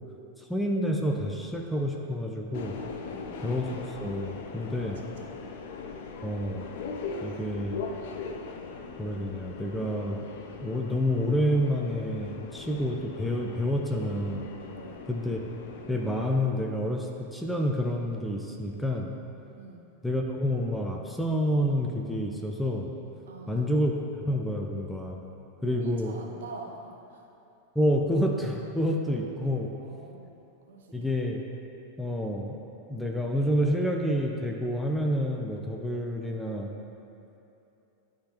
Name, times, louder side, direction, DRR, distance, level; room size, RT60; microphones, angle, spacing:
voice 1, 0.5-2.8 3.4-5.0 6.2-6.6 7.2-7.8 9.0-10.3 10.6-14.4 15.1-15.4 15.9-19.1 20.0-22.9 23.5-23.9 24.2-25.2 25.6-26.1 27.8-29.7 30.9-31.5 32.0-32.6 32.9-36.7, equal, ahead, 0 dB, 0.5 m, -28 dB
Subway metro underground, 2.5-16.4, left 5 dB, 50° left, 0.5 m, -40 dB
voice 2, 3.0-3.5 4.8-5.5 14.7-15.1 19.5-19.9 23.3-23.7 25.6-27.2 29.8-30.4 30.7-31.1, right 3 dB, 60° right, 1 dB, 0.7 m, -46 dB
11.0 x 3.8 x 2.9 m, 2.9 s
figure-of-eight pair, 90°, 0 cm